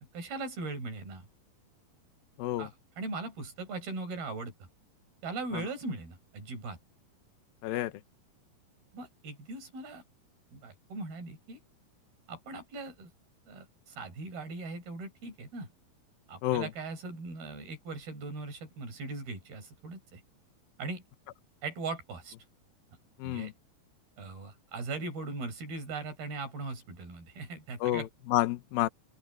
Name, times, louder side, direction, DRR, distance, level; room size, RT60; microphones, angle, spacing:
voice 1, 0.1-1.3 2.6-2.7 3.0-4.5 5.2-6.8 8.9-10.0 10.5-11.6 12.3-13.1 13.5-15.7 16.3-20.2 20.8-21.0 21.6-22.3 23.2-23.5 24.2-28.1, right 3 dB, 80° right, 8.3 m, -39 dB
voice 2, 2.4-2.7 5.5-5.7 7.6-7.9 16.4-16.7 23.2-23.5 27.8-28.9, left 15 dB, 80° left, 2.7 m, -30 dB
open air
omnidirectional pair, 4.3 m